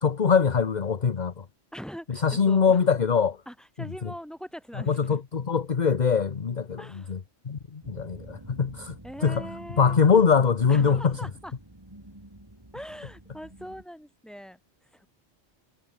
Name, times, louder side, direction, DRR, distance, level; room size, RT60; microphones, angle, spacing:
voice 1, 0.0-1.4 2.1-3.4 4.9-7.2 7.4-9.0 9.2-9.4 9.8-11.2, left 6 dB, 45° left, 1.1 m, -23 dB
voice 2, 1.7-2.8 3.5-5.2 6.8-7.1 9.0-10.0 10.7-11.5 12.7-15.1, equal, ahead, 4.5 m, -42 dB
sound 1, 7.8-13.8, right 1 dB, 20° right, 3.7 m, -47 dB
omnidirectional pair, 1.1 m